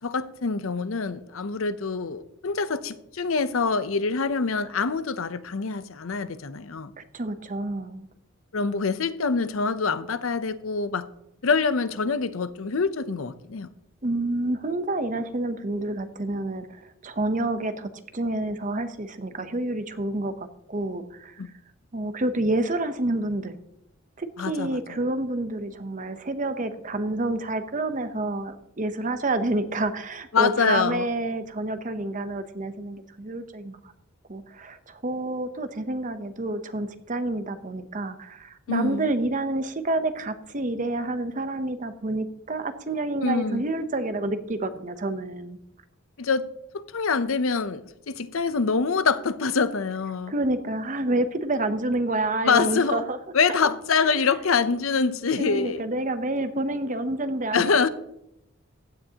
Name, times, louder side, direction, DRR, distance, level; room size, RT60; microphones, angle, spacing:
voice 1, 0.0-6.9 8.5-11.1 11.4-13.7 21.4-21.5 24.4-24.8 30.3-31.1 38.7-39.1 43.2-43.6 46.2-46.5 46.7-50.3 52.4-53.0 53.3-55.8 57.5-57.9, left 5 dB, 80° left, 0.7 m, -25 dB
voice 2, 7.0-8.1 14.0-21.4 21.9-23.6 24.2-33.8 34.3-45.6 50.3-53.2 53.5-53.7 54.1-54.2 55.4-57.6, right 2 dB, 40° right, 0.8 m, -28 dB
15.5 x 9.4 x 2.9 m
head